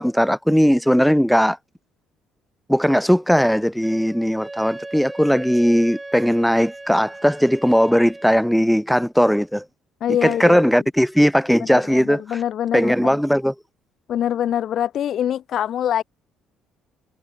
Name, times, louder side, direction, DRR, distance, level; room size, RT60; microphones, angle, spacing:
voice 1, 0.0-1.6 2.7-9.6 10.2-12.4 12.7-13.5, equal, ahead, 0.3 m, -18 dB
Wind instrument woodwind instrument, 3.8-8.5, right 2 dB, 15° right, 7.9 m, -38 dB
voice 2, 10.0-10.8 11.6-13.2 14.1-16.0, left 10 dB, 50° left, 2.9 m, -24 dB
figure-of-eight pair, 50°, 0 cm